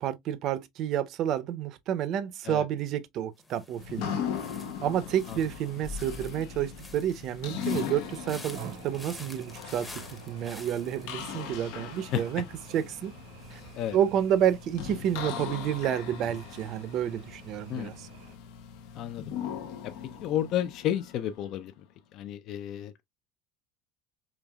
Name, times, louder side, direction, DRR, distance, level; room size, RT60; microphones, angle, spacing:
voice 1, 0.0-4.2 4.8-9.9 10.3-12.4 12.7-13.1 13.5-13.6 13.9-18.1, right 10 dB, 45° right, 0.5 m, -30 dB
sound 1, 3.4-16.4 16.7-17.1, left 2 dB, 10° left, 0.8 m, -51 dB
sound 2, 3.8-21.6, left 8 dB, 75° left, 0.8 m, -39 dB
sound 3, 7.5-18.4, right 7 dB, 90° right, 0.9 m, -50 dB
voice 2, 20.2-21.7 22.1-22.9, left 11 dB, 50° left, 0.4 m, -31 dB
5.1 x 3.0 x 2.3 m
cardioid pair, 150°, 0 cm